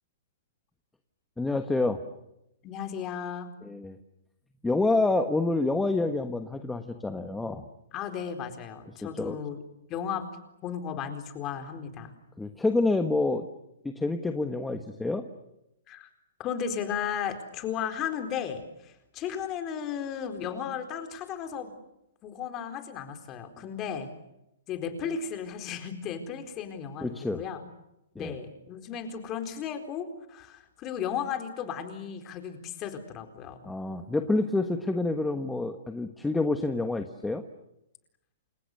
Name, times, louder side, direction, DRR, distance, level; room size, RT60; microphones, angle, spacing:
voice 1, 1.4-2.0 3.6-4.0 4.6-7.6 9.0-9.4 12.4-13.5 13.8-15.2 27.0-27.4 28.1-28.3 33.6-37.4, left 2 dB, 5° left, 7 dB, 1.4 m, -28 dB
voice 2, 2.6-3.5 7.9-9.6 9.9-10.3 10.6-12.1 15.9-16.1 16.4-21.7 22.2-24.1 24.7-27.6 28.2-33.7, left 8 dB, 20° left, 7 dB, 4.2 m, -35 dB
29.0 x 27.5 x 6.8 m, 0.85 s
hypercardioid pair, 165°, 0 cm